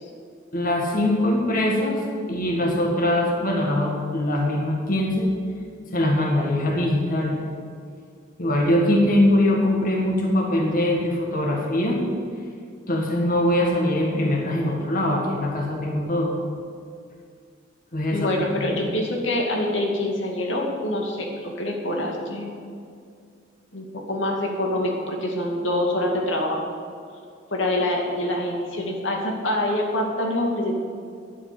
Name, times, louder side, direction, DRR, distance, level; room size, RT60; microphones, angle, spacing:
voice 1, 0.5-2.0 2.3-5.3 5.9-7.4 8.4-12.0 12.9-16.4 17.9-18.9, left 1 dB, 50° left, -1 dB, 1.8 m, -22 dB
voice 2, 18.1-22.5 23.7-26.6 27.5-30.8, left 1 dB, 90° left, 0 dB, 2.3 m, -25 dB
10.5 x 8.6 x 8.7 m, 2.2 s
head